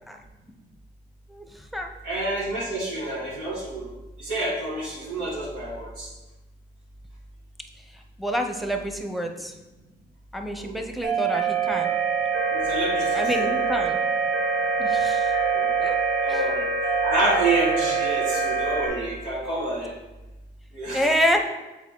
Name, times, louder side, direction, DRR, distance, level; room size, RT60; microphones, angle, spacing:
voice 1, 1.3-1.9 8.2-9.5 10.3-11.9 13.1-14.0 14.8-15.3 15.8-16.0 16.3-16.4 20.9-21.4, equal, ahead, 4 dB, 0.7 m, -27 dB
voice 2, 2.0-3.9 4.2-6.1 10.6-10.8 12.5-13.5 15.5-15.7 16.2-19.9 20.7-21.1, right 2 dB, 90° right, -10 dB, 2.1 m, -28 dB
sound 1, 11.0-18.9, right 5 dB, 55° right, 1.2 m, -24 dB
7.2 x 4.0 x 3.7 m, 1.1 s
cardioid pair, 90°, 20 cm